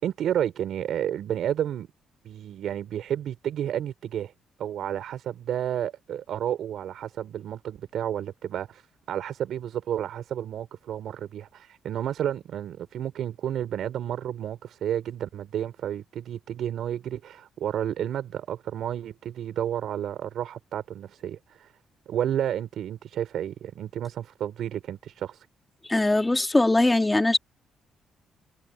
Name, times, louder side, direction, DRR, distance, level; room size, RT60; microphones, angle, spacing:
voice 1, 0.0-1.9 2.2-4.3 4.6-8.8 9.1-21.7 22.1-25.5, right 10 dB, 70° right, 5.6 m, -31 dB
voice 2, 25.8-27.4, left 2 dB, 15° left, 2.6 m, -21 dB
cardioid pair, 90°, 0 cm